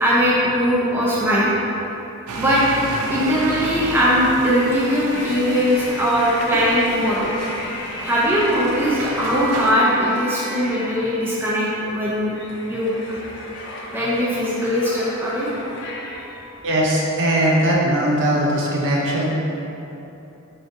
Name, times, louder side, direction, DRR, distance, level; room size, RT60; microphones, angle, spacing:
voice 1, 0.0-1.5 2.4-2.6 3.1-7.3 8.0-12.3 12.7-13.2 13.9-15.5, equal, 10° right, -8 dB, 0.4 m, -20 dB
sound 1, 2.3-9.7, right 3 dB, 85° right, 0.4 m, -32 dB
sound 2, 5.1-17.7, left 1 dB, 50° left, 0.4 m, -35 dB
voice 2, 16.6-19.3, right 1 dB, 55° right, -3 dB, 0.7 m, -19 dB
4.6 x 3.7 x 2.6 m, 3.0 s
head